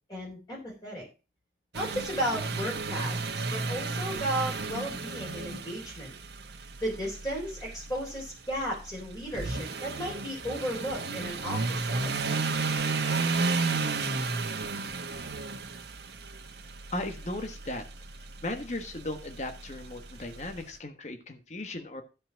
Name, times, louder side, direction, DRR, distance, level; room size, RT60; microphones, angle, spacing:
voice 1, 0.1-1.0 1.7-3.2 3.5-6.1 6.8-12.1, equal, 20° left, -3 dB, 3.6 m, -34 dB
sound 1, 1.7-20.6, right 4 dB, 75° right, 1.4 m, -33 dB
voice 2, 16.9-17.8 18.4-22.0, left 2 dB, 40° left, 5 dB, 1.3 m, -36 dB
13.5 x 5.2 x 6.2 m, 0.31 s
head